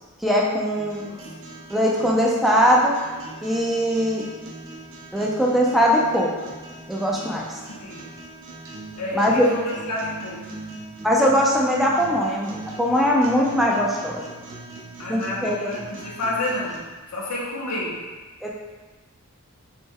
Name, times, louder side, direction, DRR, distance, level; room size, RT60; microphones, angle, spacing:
voice 1, 0.2-1.1 1.7-3.0 3.4-4.3 5.1-6.5 6.9-7.6 9.1-9.5 11.0-14.2 15.1-15.7 18.4-18.5, equal, ahead, -3 dB, 0.3 m, -21 dB
sound 1, 0.8-16.8, right 2 dB, 55° right, 0.5 m, -40 dB
voice 2, 7.6-8.0 9.0-10.6 15.0-16.8 17.1-17.9, left 1 dB, 85° left, -4 dB, 0.6 m, -30 dB
3.2 x 2.1 x 3.3 m, 1.3 s
head